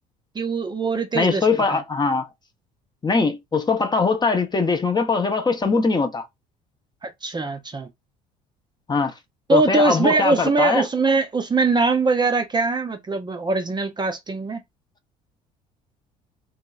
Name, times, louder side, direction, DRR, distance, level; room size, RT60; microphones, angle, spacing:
voice 1, 0.3-1.5 1.7-1.8 7.0-7.9 9.5-14.6, right 3 dB, 20° right, 0.6 m, -22 dB
voice 2, 1.1-2.3 3.0-6.2 8.9-9.1 9.5-10.8, left 4 dB, 20° left, 0.7 m, -21 dB
3.0 x 2.7 x 2.3 m
hypercardioid pair, 60°, 21 cm